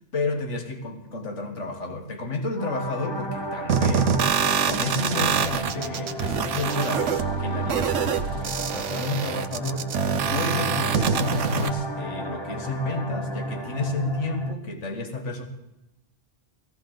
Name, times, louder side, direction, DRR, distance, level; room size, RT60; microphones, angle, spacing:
voice 1, 0.1-9.9 10.3-15.5, left 2 dB, 70° left, 4 dB, 2.0 m, -31 dB
sound 1, 2.6-14.5, equal, 25° left, 0.8 m, -33 dB
sound 2, 3.7-11.7, right 7 dB, 75° right, 1.1 m, -25 dB
18.5 x 15.5 x 3.9 m, 0.96 s
omnidirectional pair, 1.3 m